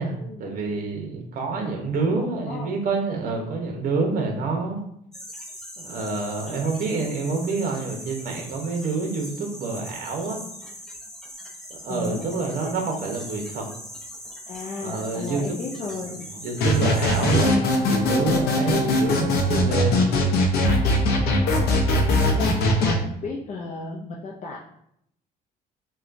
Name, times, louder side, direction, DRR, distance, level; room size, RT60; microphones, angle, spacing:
voice 1, 0.0-4.8 5.8-10.4 11.7-13.7 14.8-15.4 16.4-20.1, right 3 dB, 55° right, 2 dB, 0.9 m, -27 dB
voice 2, 2.0-2.7 11.9-12.3 14.5-16.3 22.0-24.6, left 3 dB, 40° left, -1 dB, 0.6 m, -34 dB
sound 1, 5.1-17.5, equal, 5° left, 0.7 m, -40 dB
sound 2, 16.6-23.0, left 1 dB, 80° left, 0.7 m, -21 dB
5.9 x 2.3 x 2.6 m, 0.73 s
cardioid pair, 110°, 17 cm